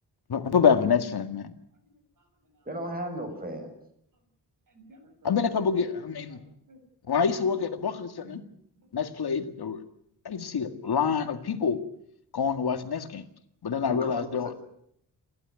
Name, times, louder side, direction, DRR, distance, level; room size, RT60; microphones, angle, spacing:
voice 1, 0.3-1.5 5.2-6.4 7.1-8.4 8.9-9.8 10.2-11.8 12.3-13.2 13.6-14.5, left 6 dB, 65° left, 8 dB, 2.0 m, -26 dB
voice 2, 1.7-2.7 4.1-4.3 4.7-5.4 6.0-6.8 7.1-8.9, right 1 dB, 50° right, 5 dB, 6.8 m, -55 dB
voice 3, 2.6-3.7 14.0-14.6, right 1 dB, 20° right, 4 dB, 6.6 m, -35 dB
29.0 x 12.0 x 9.5 m, 0.73 s
wide cardioid pair, 125°, 41 cm